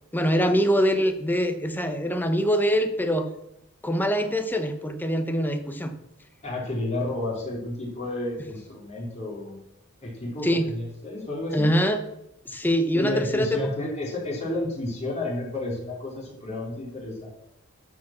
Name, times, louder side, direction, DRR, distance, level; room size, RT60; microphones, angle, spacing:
voice 1, 0.1-3.3 3.8-5.9 10.4-10.7 11.5-12.0 12.4-13.7, equal, 10° left, 7 dB, 0.9 m, -24 dB
voice 2, 6.4-9.6 10.0-11.7 12.9-17.3, left 2 dB, 35° left, -4 dB, 3.6 m, -31 dB
12.5 x 5.2 x 7.2 m, 0.80 s
head